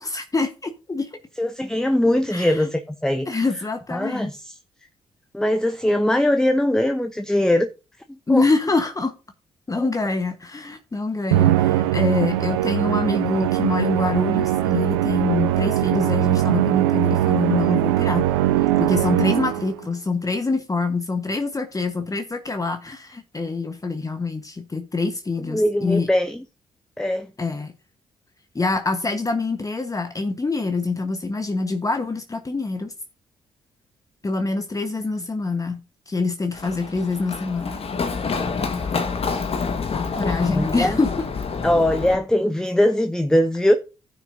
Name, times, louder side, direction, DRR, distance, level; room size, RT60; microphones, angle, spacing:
voice 1, 0.0-1.2 2.3-2.7 3.3-4.3 8.3-9.2 9.7-18.3 18.6-26.1 27.4-27.7 28.5-32.9 34.2-35.8 36.1-37.8 40.1-41.3, left 3 dB, 25° left, 1.2 m, -25 dB
voice 2, 1.4-3.4 3.9-4.5 5.3-7.7 8.1-8.4 9.8-9.9 25.5-26.4 27.0-27.3 40.5-41.0 41.6-43.8, left 1 dB, 5° left, 0.9 m, -21 dB
Musical instrument, 11.3-19.8, right 13 dB, 90° right, 0.4 m, -21 dB
Run, 36.5-42.1, left 5 dB, 50° left, 1.5 m, -27 dB
15.0 x 6.5 x 2.7 m
hypercardioid pair, 45°, 13 cm